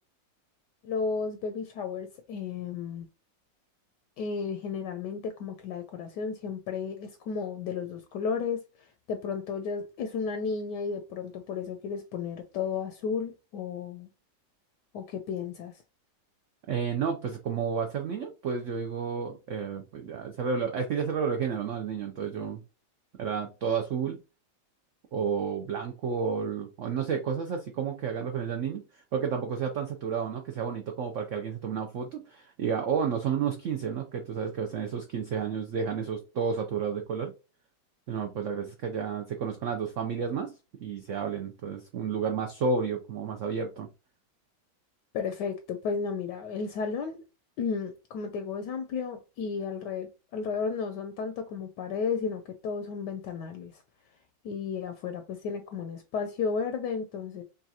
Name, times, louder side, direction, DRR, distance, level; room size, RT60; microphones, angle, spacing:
voice 1, 0.8-3.1 4.2-8.6 9.1-14.1 14.9-15.7 45.1-47.2 47.6-53.7 54.4-57.4, left 5 dB, 75° left, 1.1 m, -33 dB
voice 2, 16.7-22.6 23.2-24.2 25.1-28.8 29.1-37.3 38.1-40.5 40.8-43.9, right 6 dB, 90° right, 0.6 m, -31 dB
5.5 x 2.5 x 2.7 m
omnidirectional pair, 2.0 m